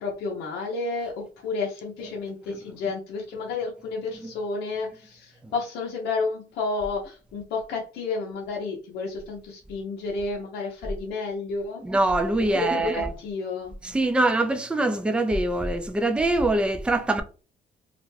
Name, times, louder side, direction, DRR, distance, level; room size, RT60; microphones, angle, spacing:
voice 1, 0.0-11.8 12.5-13.7, left 4 dB, 75° left, 0.7 m, -31 dB
voice 2, 11.8-13.1 13.8-17.2, right 2 dB, 5° right, 0.3 m, -23 dB
2.4 x 2.1 x 3.1 m
cardioid pair, 110°, 17 cm